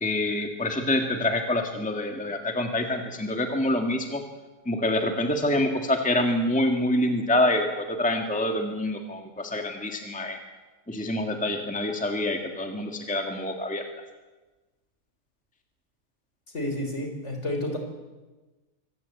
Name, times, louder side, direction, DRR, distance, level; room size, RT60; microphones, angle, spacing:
voice 1, 0.0-4.2 4.7-10.4 10.9-13.8, left 1 dB, 5° left, 4 dB, 1.8 m, -26 dB
voice 2, 16.5-17.8, left 1 dB, 50° left, 5 dB, 4.3 m, -30 dB
25.0 x 16.0 x 8.2 m, 1.2 s
omnidirectional pair, 1.6 m